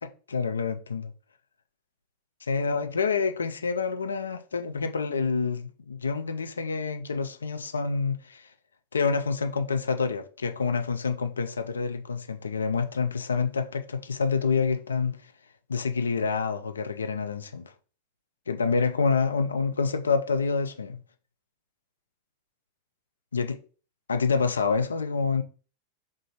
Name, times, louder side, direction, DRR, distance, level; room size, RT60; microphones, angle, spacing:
voice 1, 0.0-1.1 2.5-8.5 8.9-15.2 15.7-17.7 18.5-21.0 23.3-23.6 24.1-25.4, left 5 dB, 75° left, 0.4 m, -27 dB
3.6 x 2.5 x 4.1 m
figure-of-eight pair, 90°, 0 cm